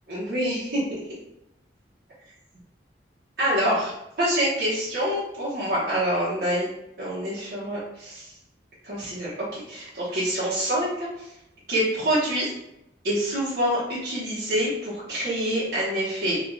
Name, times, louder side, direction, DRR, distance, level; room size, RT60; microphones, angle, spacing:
voice 1, 0.1-1.0 3.4-6.7 7.0-8.3 8.8-11.1 11.7-12.5 13.0-16.4, equal, 60° right, -10 dB, 1.2 m, -26 dB
3.7 x 2.4 x 4.0 m, 0.85 s
head